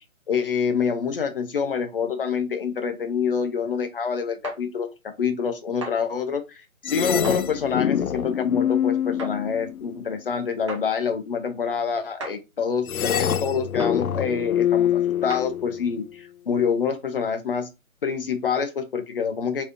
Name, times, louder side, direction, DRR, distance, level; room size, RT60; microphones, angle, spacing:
voice 1, 0.3-4.9 5.2-17.7 18.0-19.6, left 6 dB, 40° left, 8 dB, 0.8 m, -26 dB
sound 1, 4.4-4.6 5.8-6.0 7.2-7.4 9.2-9.4 10.7-10.9 12.2-12.4 13.8-14.0 15.3-15.5, right 3 dB, 20° right, 0.6 m, -35 dB
sound 2, 6.8-10.1 12.8-16.0, left 9 dB, 85° left, 0.5 m, -25 dB
4.6 x 3.5 x 2.6 m, 0.25 s
figure-of-eight pair, 145°, 42 cm